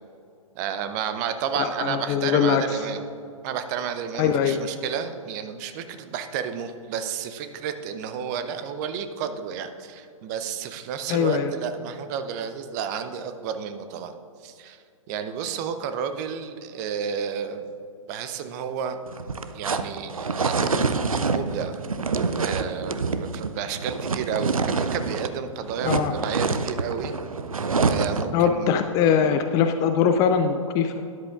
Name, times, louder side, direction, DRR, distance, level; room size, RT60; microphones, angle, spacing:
voice 1, 0.6-3.0 3.4-14.2 14.4-14.8 15.1-17.7 18.1-19.0 19.5-20.8 21.3-21.8 22.4-27.1 27.9-28.7, right 7 dB, 30° right, 9 dB, 0.6 m, -31 dB
voice 2, 1.6-2.8 4.2-4.6 11.1-11.5 25.8-26.1 28.3-30.9, left 7 dB, 20° left, 8 dB, 0.3 m, -22 dB
sound 1, 19.1-25.4 25.6-28.4, right 4 dB, 80° right, 0.5 m, -26 dB
12.5 x 10.5 x 2.4 m, 2.5 s
figure-of-eight pair, 115°, 17 cm